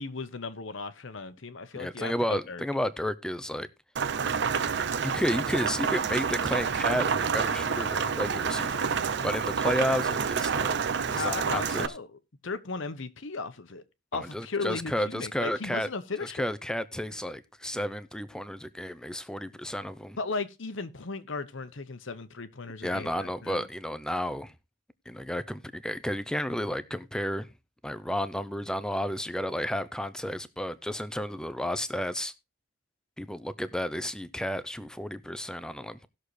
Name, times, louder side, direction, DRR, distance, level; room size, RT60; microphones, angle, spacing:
voice 1, 0.0-2.6 11.1-13.8 14.1-16.5 20.2-23.7, left 3 dB, 65° left, 0.9 m, -36 dB
voice 2, 1.7-3.7 5.0-8.9 9.2-11.9 14.1-15.9 16.2-20.2 22.8-24.5 25.1-27.5 27.8-32.3 33.2-36.1, equal, 5° left, 0.5 m, -32 dB
Rain, 4.0-11.9, right 6 dB, 55° right, 0.5 m, -28 dB
18.0 x 6.5 x 3.2 m
head